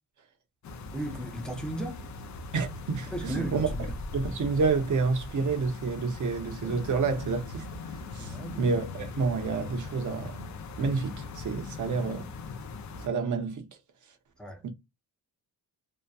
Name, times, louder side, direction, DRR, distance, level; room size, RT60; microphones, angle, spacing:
sound 1, 0.6-13.1, left 3 dB, 50° left, 0.4 m, -40 dB
voice 1, 0.9-2.1 3.1-4.0 8.2-8.6 14.4-14.7, right 1 dB, ahead, 0.6 m, -36 dB
voice 2, 2.5-3.7 4.1-7.7 8.1-10.5 10.8-12.3 13.0-13.7 14.6-14.7, right 4 dB, 50° right, 0.7 m, -29 dB
2.7 x 2.2 x 2.2 m
wide cardioid pair, 145°, 39 cm